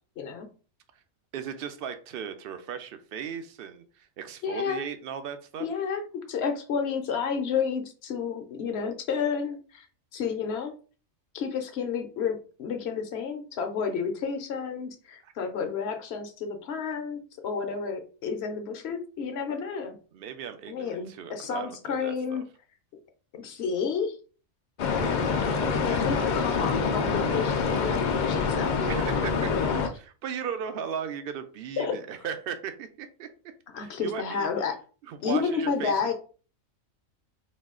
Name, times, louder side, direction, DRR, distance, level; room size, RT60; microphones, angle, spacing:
voice 1, 0.2-0.5 4.4-4.8 5.6-9.9 10.1-10.7 11.3-20.0 20.7-22.4 23.3-24.2 25.7-28.9 29.5-29.8 31.8-32.0 33.7-34.8 35.2-36.1, left 6 dB, 60° left, 6 dB, 0.8 m, -31 dB
voice 2, 1.3-5.7 15.2-15.3 20.1-22.4 25.9-26.0 28.9-29.7 30.0-33.3 33.8-34.5 35.0-35.9, right 7 dB, 60° right, 9 dB, 0.6 m, -37 dB
sound 1, 24.8-29.9, left 5 dB, 85° left, 0.4 m, -26 dB
4.1 x 2.3 x 3.6 m, 0.38 s
omnidirectional pair, 1.4 m